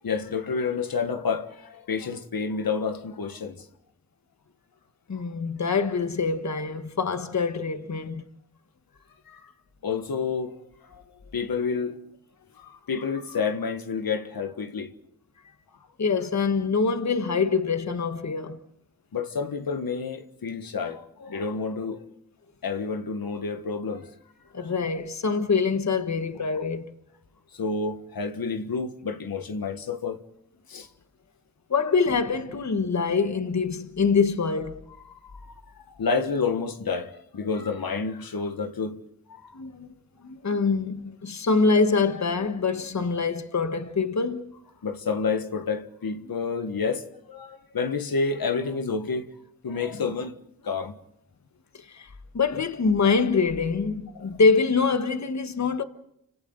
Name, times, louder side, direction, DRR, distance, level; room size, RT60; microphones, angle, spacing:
voice 1, 0.0-3.7 9.3-9.5 9.8-10.6 10.8-11.0 11.3-12.0 12.6-14.9 19.1-22.1 22.6-24.1 24.5-24.7 26.5-26.6 27.5-30.2 30.7-30.9 35.3-35.6 35.9-39.0 39.3-39.6 44.8-49.3 49.6-50.4 50.6-51.0 52.5-52.6 54.1-54.3, left 5 dB, 90° left, 1.5 m, -29 dB
voice 2, 5.1-8.2 16.0-18.6 24.5-26.9 31.7-34.8 39.5-39.9 40.2-44.5 51.9-52.1 52.3-55.8, left 4 dB, 50° left, 1.3 m, -24 dB
30.0 x 25.5 x 3.9 m
wide cardioid pair, 95°, 35 cm